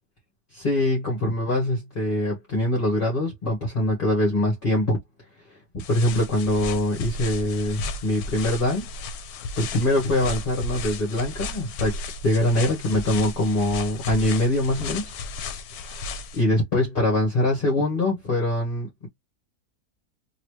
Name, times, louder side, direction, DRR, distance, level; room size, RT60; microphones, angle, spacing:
voice 1, 0.5-5.0 5.5-8.9 9.6-15.1 16.3-19.1, left 1 dB, 40° left, 1.2 m, -23 dB
sound 1, 5.8-16.4, left 3 dB, 75° left, 1.1 m, -34 dB
3.0 x 2.7 x 3.1 m
omnidirectional pair, 1.7 m